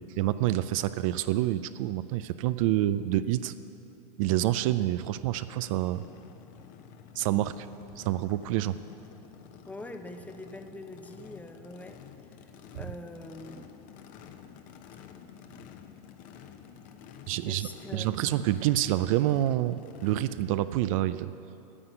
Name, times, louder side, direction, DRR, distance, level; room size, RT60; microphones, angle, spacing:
voice 1, 0.0-3.5 4.2-6.0 7.2-7.7 8.0-8.8 17.3-21.3, right 14 dB, 55° right, 13 dB, 0.4 m, -27 dB
Race car auto racing / Idling / Accelerating revving vroom, 5.7-20.2, left 7 dB, 40° left, 0.9 m, -50 dB
voice 2, 9.7-12.0 12.7-13.7 17.4-18.4, left 2 dB, 5° left, 7 dB, 0.7 m, -43 dB
9.9 x 7.8 x 9.0 m, 2.7 s
hypercardioid pair, 115°, 21 cm